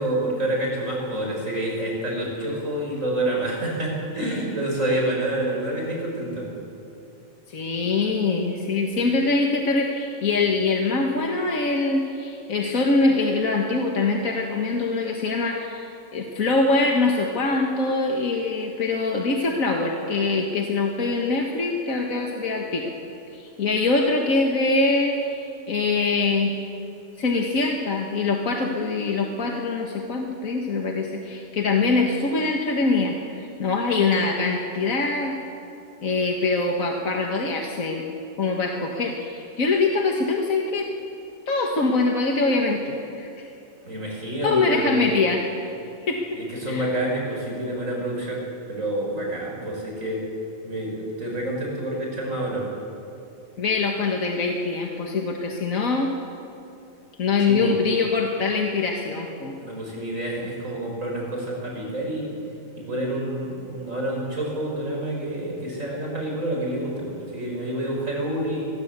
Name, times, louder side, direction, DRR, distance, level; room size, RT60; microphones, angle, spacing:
voice 1, 0.0-6.5 43.8-45.0 46.3-48.4 48.7-50.2 50.6-52.7 57.5-57.7 59.6-62.3 62.8-68.7, right 1 dB, 75° right, -1 dB, 6.6 m, -28 dB
voice 2, 7.5-22.9 23.3-25.2 25.7-26.6 27.2-35.4 36.0-38.0 38.4-40.9 41.5-43.5 44.4-45.5 46.0-46.2 46.7-46.9 53.6-56.1 57.2-59.5, left 3 dB, 80° left, 1 dB, 2.1 m, -23 dB
25.0 x 21.0 x 8.3 m, 2.7 s
omnidirectional pair, 1.4 m